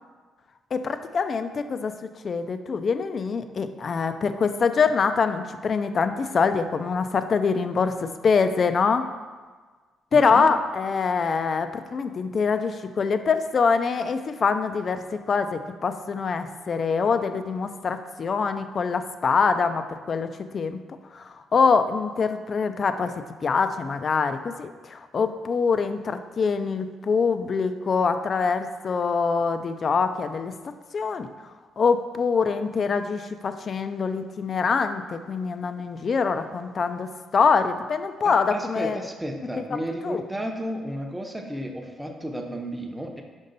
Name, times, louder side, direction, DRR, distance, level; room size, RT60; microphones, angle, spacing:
voice 1, 0.7-1.9 2.2-9.1 10.1-20.8 21.1-23.1 23.4-30.5 30.9-39.0 40.0-40.2, left 5 dB, 45° left, 9 dB, 0.4 m, -24 dB
voice 2, 10.1-10.5 38.2-43.2, right 1 dB, 5° right, 2 dB, 0.7 m, -33 dB
5.3 x 5.2 x 3.9 m, 1.4 s
cardioid pair, 90°, 0 cm